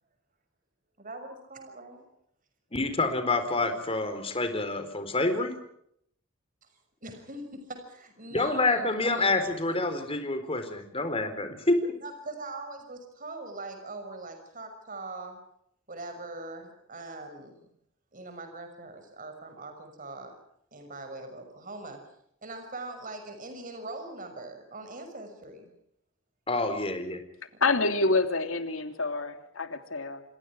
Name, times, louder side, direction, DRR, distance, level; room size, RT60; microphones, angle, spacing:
voice 1, 1.0-2.0 7.0-9.7 12.0-15.4 15.9-17.7 18.1-20.4 20.7-22.0 22.4-25.7, right 2 dB, 40° right, 6 dB, 6.3 m, -41 dB
voice 2, 2.7-5.5 8.3-11.9 26.5-27.2, left 2 dB, 30° left, 8 dB, 4.4 m, -27 dB
voice 3, 27.6-30.2, left 3 dB, 75° left, 7 dB, 3.0 m, -27 dB
28.0 x 27.5 x 4.8 m, 0.72 s
head